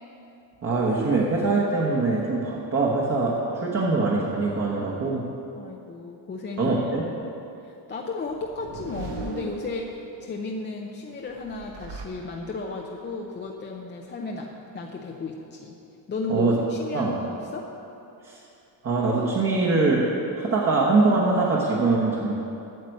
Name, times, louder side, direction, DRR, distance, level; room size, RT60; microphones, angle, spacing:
voice 1, 0.6-5.2 6.6-7.1 16.3-16.5 16.9-17.1 18.2-18.4 18.8-20.1 20.3-22.4, right 3 dB, 30° right, -4 dB, 1.2 m, -23 dB
voice 2, 5.5-6.8 7.6-15.8 16.1-17.7, left 3 dB, 25° left, 0 dB, 0.6 m, -34 dB
sound 1, 8.2-10.3 11.3-12.8, right 3 dB, 65° right, 1.2 m, -39 dB
9.3 x 6.7 x 7.8 m, 2.8 s
cardioid pair, 155°, 45 cm